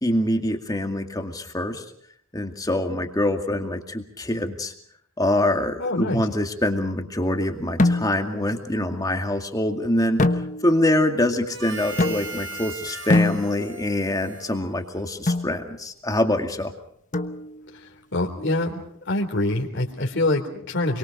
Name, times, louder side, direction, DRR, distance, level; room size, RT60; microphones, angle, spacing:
voice 1, 0.0-1.8 2.3-4.7 5.2-16.7, left 1 dB, 20° left, 4 dB, 2.3 m, -25 dB
voice 2, 5.8-6.3 18.1-18.8 19.1-21.0, left 2 dB, 60° left, 1 dB, 3.6 m, -24 dB
sound 1, 7.8-8.4 10.2-10.9 12.0-12.6 13.1-13.9 15.3-15.6 17.1-17.7, left 2 dB, 40° left, 1.1 m, -24 dB
Harmonica, 11.5-15.3, right 3 dB, 70° right, 5.1 m, -38 dB
29.0 x 23.0 x 5.3 m, 0.66 s
head